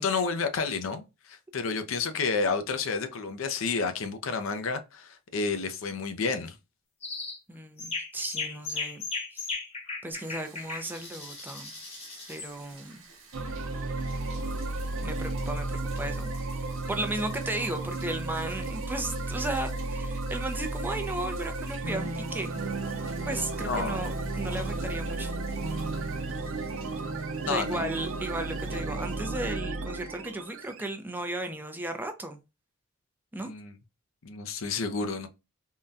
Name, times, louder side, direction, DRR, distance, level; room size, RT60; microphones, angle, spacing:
voice 1, 0.0-6.6 23.7-24.0 27.5-27.8 33.4-33.7 34.2-35.3, left 4 dB, 70° left, 0.5 m, -30 dB
sound 1, 7.0-7.4 7.8-12.5, left 4 dB, 30° left, 0.9 m, -36 dB
voice 2, 7.5-9.0 9.3-9.5 10.0-11.7 12.3-13.1 15.0-16.3 16.6-22.5 23.3-25.3 27.5-32.4 33.3-33.5, right 1 dB, 10° right, 0.4 m, -35 dB
Bathtub (filling or washing), 10.1-29.2, right 5 dB, 70° right, 1.0 m, -52 dB
sound 2, 13.3-30.9, right 2 dB, 90° right, 0.6 m, -33 dB
3.6 x 2.2 x 2.6 m
head